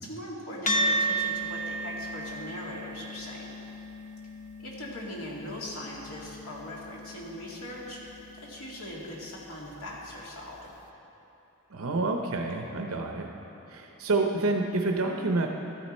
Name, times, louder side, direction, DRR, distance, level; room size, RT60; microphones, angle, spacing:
voice 1, 0.0-3.5 4.6-8.0 8.3-10.7, left 1 dB, 80° left, -3 dB, 2.1 m, -40 dB
sound 1, 0.7-9.3, right 1 dB, 35° left, 0.7 m, -34 dB
voice 2, 11.7-13.3 13.7-15.5, right 3 dB, 70° right, 2 dB, 0.7 m, -28 dB
13.0 x 9.3 x 4.3 m, 3.0 s
head